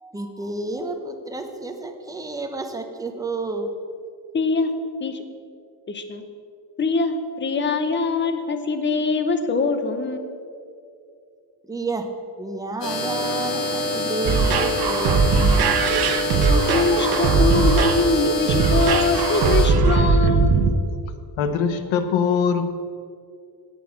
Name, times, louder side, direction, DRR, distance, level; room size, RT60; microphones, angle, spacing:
voice 1, 0.0-3.7 11.7-12.1 12.4-15.8, right 2 dB, 10° right, 4 dB, 0.9 m, -30 dB
voice 2, 4.3-4.7 5.0-5.2 5.9-6.2 6.8-10.3 16.5-20.6, left 3 dB, 25° left, 8 dB, 0.8 m, -23 dB
sound 1, 12.8-19.7, left 2 dB, 70° left, 2.6 m, -26 dB
sound 2, 14.2-20.7, right 5 dB, 55° right, 1.0 m, -19 dB
voice 3, 21.4-22.6, left 6 dB, 90° left, 9 dB, 1.1 m, -21 dB
9.0 x 8.3 x 7.2 m, 2.4 s
cardioid pair, 155°, 46 cm